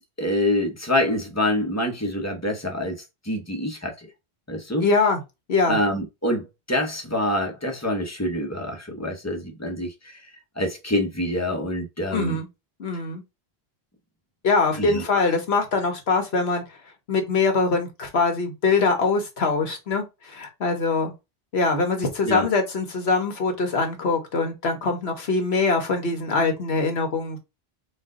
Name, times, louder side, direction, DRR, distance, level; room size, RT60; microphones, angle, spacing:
voice 1, 0.2-4.1 4.5-4.8 5.7-10.2 10.6-12.4 14.8-15.3 22.2-22.5, left 1 dB, 15° left, 1.0 m, -26 dB
voice 2, 4.8-5.2 5.5-5.8 12.1-12.5 12.8-13.2 14.4-16.6 17.1-21.1 21.5-27.4, left 4 dB, 80° left, 1.4 m, -23 dB
4.4 x 2.6 x 3.7 m
omnidirectional pair, 1.1 m